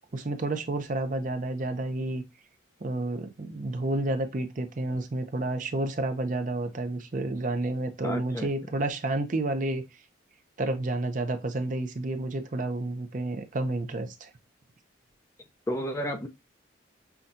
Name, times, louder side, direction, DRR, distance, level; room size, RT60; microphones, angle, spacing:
voice 1, 0.1-2.2 2.8-9.8 10.6-14.3, right 2 dB, 40° right, 0.5 m, -30 dB
voice 2, 8.0-8.5 15.7-16.3, equal, 15° left, 0.4 m, -31 dB
5.7 x 2.3 x 2.5 m
head